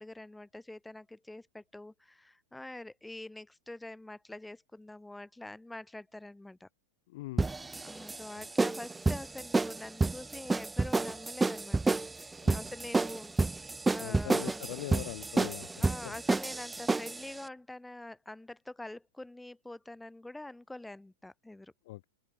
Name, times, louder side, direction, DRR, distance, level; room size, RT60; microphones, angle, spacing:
voice 1, 0.0-6.7 7.8-14.6 15.8-21.7, left 2 dB, 5° left, 5.2 m, -46 dB
voice 2, 7.1-7.5 8.3-8.4 12.4-12.6 14.0-16.1 21.8-22.1, left 18 dB, 60° left, 2.7 m, -42 dB
sound 1, 7.4-17.3, right 3 dB, 10° right, 0.8 m, -30 dB
open air
hypercardioid pair, 105°, 0 cm